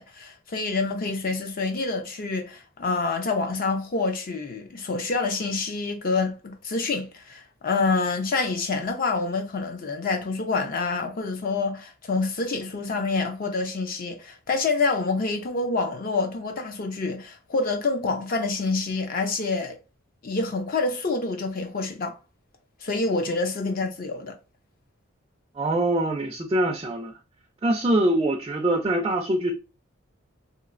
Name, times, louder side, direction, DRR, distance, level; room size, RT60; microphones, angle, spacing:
voice 1, 0.0-19.8 20.2-22.2 22.8-24.3, left 3 dB, 40° left, 0.4 m, -27 dB
voice 2, 25.5-27.1 27.6-29.5, right 1 dB, 25° right, 0.3 m, -23 dB
3.0 x 3.0 x 2.4 m
head